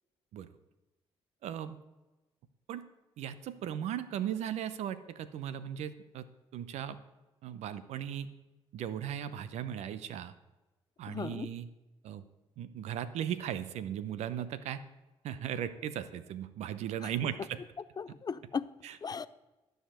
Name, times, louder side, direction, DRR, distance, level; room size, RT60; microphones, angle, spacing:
voice 1, 1.4-1.8 2.7-2.8 3.2-6.3 6.5-7.0 7.4-8.3 8.7-10.3 11.0-11.7 12.0-12.2 12.6-14.8 15.2-17.6 18.8-19.0, right 10 dB, 80° right, 13 dB, 0.8 m, -37 dB
voice 2, 11.1-11.5 17.0-17.1 18.0-18.7 19.0-19.3, left 5 dB, 35° left, 16 dB, 0.5 m, -36 dB
12.5 x 5.2 x 7.6 m, 1.1 s
supercardioid pair, 65°, 11 cm